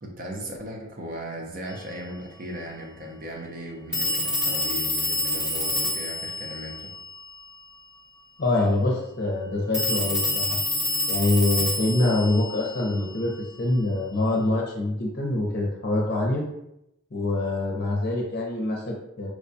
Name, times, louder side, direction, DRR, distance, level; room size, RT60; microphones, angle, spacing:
voice 1, 0.0-6.9, equal, 40° right, 1 dB, 0.6 m, -37 dB
Telephone, 1.7-1.8 3.9-7.6 9.7-13.4, left 1 dB, 5° right, 0.8 m, -28 dB
voice 2, 8.4-10.6 11.1-13.3 13.6-16.4 17.1-19.3, left 2 dB, 50° left, -2 dB, 0.6 m, -25 dB
4.7 x 2.2 x 2.6 m, 0.84 s
head